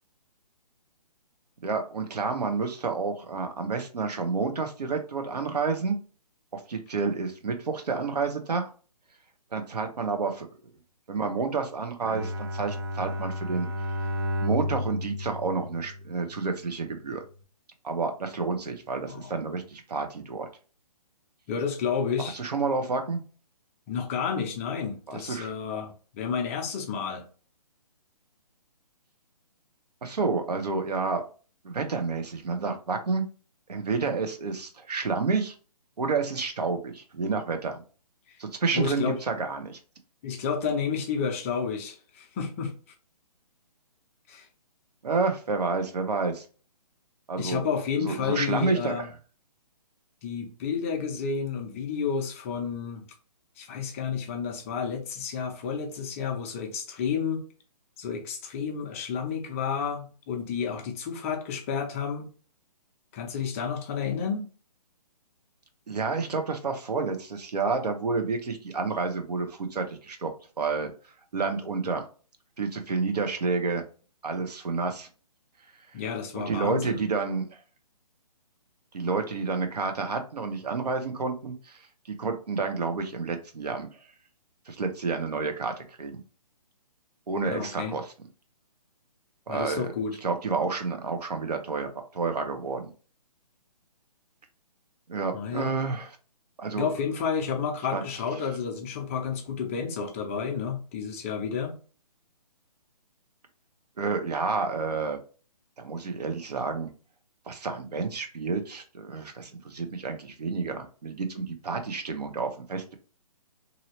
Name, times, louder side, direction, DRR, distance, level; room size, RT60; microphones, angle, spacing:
voice 1, 1.6-6.0 6.5-8.7 9.5-10.5 11.1-13.7 14.4-17.2 17.8-20.5 22.2-23.2 25.1-25.5 30.0-31.2 31.6-33.3 33.7-35.5 36.0-37.8 38.4-39.8 45.0-46.4 47.3-47.6 48.0-49.1 65.9-70.9 71.3-72.0 72.6-73.8 74.2-75.1 76.3-77.6 78.9-81.8 82.1-83.9 84.7-86.2 87.3-88.1 89.5-89.9 90.2-92.9 95.1-96.1 96.6-96.9 97.9-98.0 104.0-105.2 105.8-106.9 107.5-113.0, right 4 dB, 75° right, 0.8 m, -29 dB
Bowed string instrument, 12.0-16.4, left 1 dB, 35° right, 0.6 m, -32 dB
voice 2, 21.5-22.4 23.9-27.3 38.3-38.4 38.7-39.2 40.2-42.7 44.3-44.5 47.4-49.1 50.2-53.0 53.6-57.4 58.0-62.3 63.1-64.4 75.9-77.0 87.5-87.9 89.5-90.2 95.3-95.8 96.8-101.8, left 6 dB, 20° left, 0.5 m, -31 dB
3.0 x 2.7 x 2.8 m
figure-of-eight pair, 140°, 21 cm